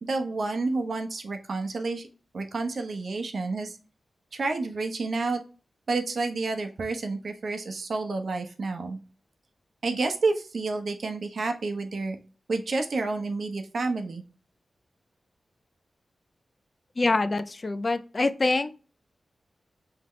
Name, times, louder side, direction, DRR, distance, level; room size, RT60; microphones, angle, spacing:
voice 1, 0.0-2.1 2.3-3.8 4.3-5.4 5.9-9.0 9.8-12.2 12.5-14.2, right 3 dB, 65° right, 5 dB, 0.9 m, -29 dB
voice 2, 17.0-18.7, left 2 dB, 35° left, 11 dB, 0.4 m, -25 dB
5.7 x 2.9 x 3.1 m, 0.35 s
wide cardioid pair, 100°, 0 cm